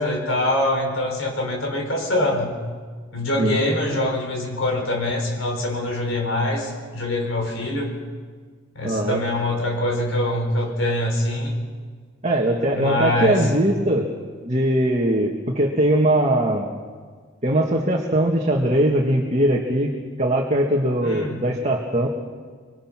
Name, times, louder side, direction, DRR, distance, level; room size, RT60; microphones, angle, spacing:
voice 1, 0.0-2.5 3.1-7.9 8.7-11.5 12.7-13.5 21.0-21.4, left 1 dB, 80° left, 0 dB, 4.9 m, -24 dB
voice 2, 8.8-9.2 12.2-14.1 14.4-16.7 17.4-19.9 20.2-22.1, right 1 dB, 35° right, 0 dB, 2.0 m, -20 dB
25.5 x 23.5 x 6.1 m, 1.6 s
head